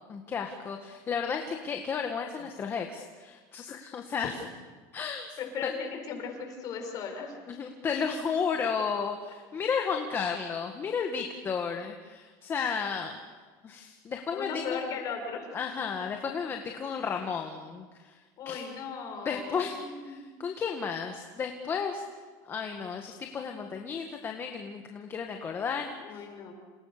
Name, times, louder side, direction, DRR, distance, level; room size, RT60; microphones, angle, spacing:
voice 1, 0.1-4.3 4.9-5.4 7.5-13.2 13.6-14.8 15.5-18.2 18.5-18.7 19.3-22.0 22.4-25.9, left 6 dB, 25° left, 3 dB, 1.8 m, -33 dB
voice 2, 5.4-7.4 14.3-15.4 18.4-20.4 26.0-26.5, left 6 dB, 40° left, 3 dB, 6.5 m, -37 dB
29.0 x 28.5 x 6.9 m, 1.4 s
cardioid pair, 155°, 10 cm